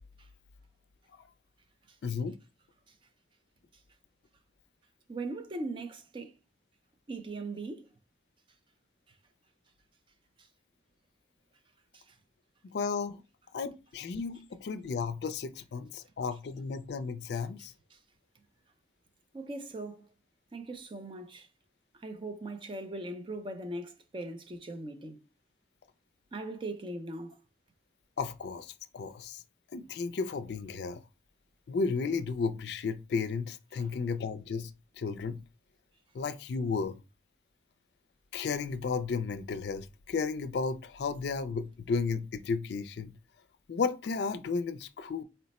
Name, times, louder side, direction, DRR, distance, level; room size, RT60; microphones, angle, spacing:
voice 1, 2.0-2.4 12.7-13.2 13.5-17.7 28.2-29.4 29.7-31.0 31.7-34.7 35.0-35.4 36.1-37.0 38.3-43.1 43.7-45.2, left 5 dB, 65° left, 0.4 m, -33 dB
voice 2, 5.1-6.3 7.1-7.9 11.9-12.1 17.9-18.0 19.3-20.1 20.5-21.5 21.9-25.2 26.3-27.3 33.7-34.1, right 2 dB, 30° right, 0.4 m, -40 dB
4.2 x 2.0 x 4.0 m
head